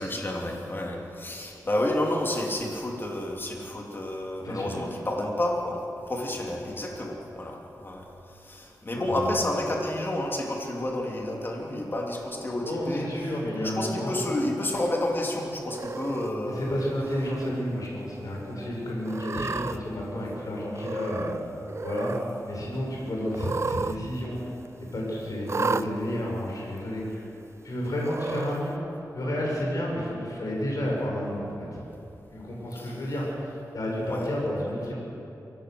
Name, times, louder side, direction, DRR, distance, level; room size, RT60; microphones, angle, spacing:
voice 1, 0.0-5.8 6.1-13.3 13.5-16.9 32.7-33.0 34.1-34.3, left 1 dB, 35° left, 0 dB, 3.2 m, -30 dB
voice 2, 4.4-4.8 8.9-9.4 12.6-14.2 16.5-21.3 21.8-24.5 24.9-27.2 27.6-28.8 29.1-31.8 32.3-33.5 33.7-34.9, equal, 65° left, -3 dB, 5.9 m, -31 dB
Cat, 15.7-16.3 17.0-17.5 17.8-17.9 19.0-19.8 20.7-21.4 21.7-22.2 23.3-24.0 24.2-24.3 25.5-25.9 26.8-26.9 28.0-28.6, right 4 dB, 45° right, 0.6 m, -32 dB
24.0 x 17.5 x 8.0 m, 2.9 s
wide cardioid pair, 95°, 7 cm